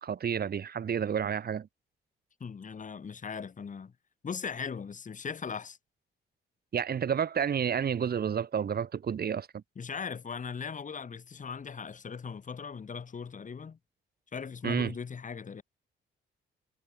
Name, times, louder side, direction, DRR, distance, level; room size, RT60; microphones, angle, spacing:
voice 1, 0.0-1.7 6.7-9.6 14.6-14.9, right 7 dB, 50° right, 3.4 m, -30 dB
voice 2, 2.4-3.9 4.2-5.8 9.7-13.8 14.3-15.6, left 6 dB, 40° left, 3.4 m, -39 dB
cardioid pair, 90°, 20 cm